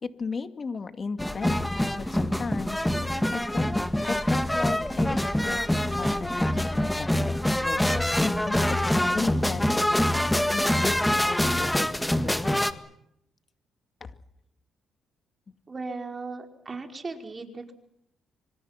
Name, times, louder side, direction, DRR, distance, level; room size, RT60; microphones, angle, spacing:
voice 1, 0.0-1.8 2.1-12.6 14.0-14.1, left 4 dB, 40° left, 8 dB, 2.4 m, -36 dB
sound 1, 1.2-12.7, left 1 dB, 5° left, 1.8 m, -25 dB
voice 2, 15.7-17.7, right 3 dB, 30° right, 4 dB, 5.1 m, -37 dB
26.5 x 26.0 x 6.0 m, 0.78 s
cardioid pair, 90°, 0 cm